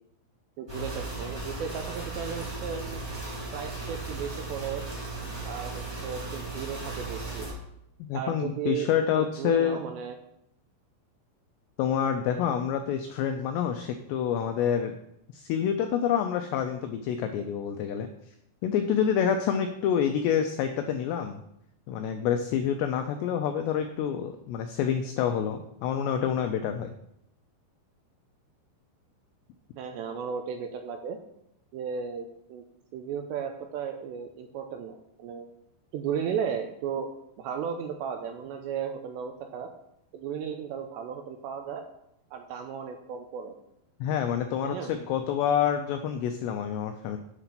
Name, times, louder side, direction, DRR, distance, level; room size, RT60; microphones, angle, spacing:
voice 1, 0.6-3.0 3.5-4.8 5.4-7.5 8.1-8.9 9.1-10.2 12.4-12.5 29.8-31.2 31.7-32.7 32.9-35.5 35.9-37.1 37.4-39.7 40.1-41.8 42.3-43.6 44.6-44.9, right 7 dB, 85° right, 5 dB, 2.6 m, -35 dB
sound 1, 0.7-7.5, right 3 dB, 15° right, 0.9 m, -36 dB
voice 2, 8.1-9.8 11.8-14.9 15.3-18.1 18.6-21.4 21.9-26.9 44.0-47.2, left 8 dB, 85° left, 6 dB, 2.4 m, -27 dB
8.1 x 5.9 x 5.8 m, 0.79 s
omnidirectional pair, 5.5 m